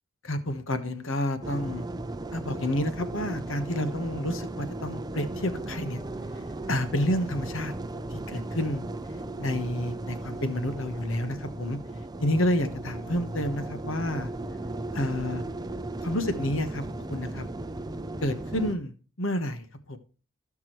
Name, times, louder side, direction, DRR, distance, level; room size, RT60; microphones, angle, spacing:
voice 1, 0.2-1.9 2.3-6.0 6.7-7.7 8.1-8.8 9.4-11.8 12.2-14.3 14.9-15.4 16.0-17.4 18.2-20.0, left 1 dB, 65° left, 10 dB, 1.2 m, -29 dB
sound 1, 1.4-18.7, right 2 dB, 20° right, 0.4 m, -36 dB
17.0 x 6.1 x 3.1 m, 0.35 s
head